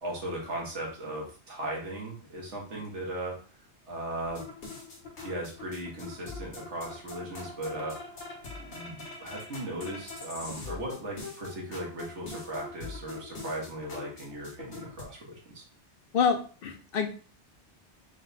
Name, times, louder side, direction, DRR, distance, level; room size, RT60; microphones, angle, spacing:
voice 1, 0.0-3.4 3.9-4.4 5.2-8.0 8.6-15.6, right 1 dB, 90° right, -2 dB, 1.7 m, -37 dB
sound 1, 4.2-15.0, left 3 dB, 80° left, 1.5 m, -43 dB
voice 2, 16.1-17.1, left 6 dB, 60° left, 5 dB, 0.7 m, -27 dB
4.4 x 2.3 x 4.1 m, 0.38 s
omnidirectional pair, 1.2 m